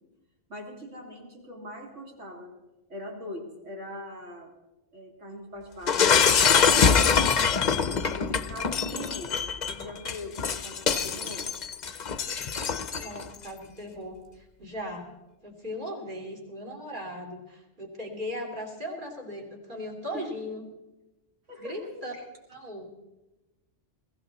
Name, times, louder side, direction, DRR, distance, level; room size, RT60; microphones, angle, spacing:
voice 1, 0.5-2.5 2.9-4.5 4.9-6.2 7.3-9.3 9.8-11.4 20.1-20.3 21.5-22.2, left 1 dB, 70° right, 0 dB, 3.4 m, -42 dB
Shatter, 5.9-13.2, left 6 dB, 45° left, 0.7 m, -24 dB
voice 2, 13.0-15.1 15.4-20.6 21.6-22.1 22.5-22.9, equal, 40° right, 0 dB, 3.1 m, -38 dB
21.5 x 15.5 x 4.1 m, 1.0 s
omnidirectional pair, 1.3 m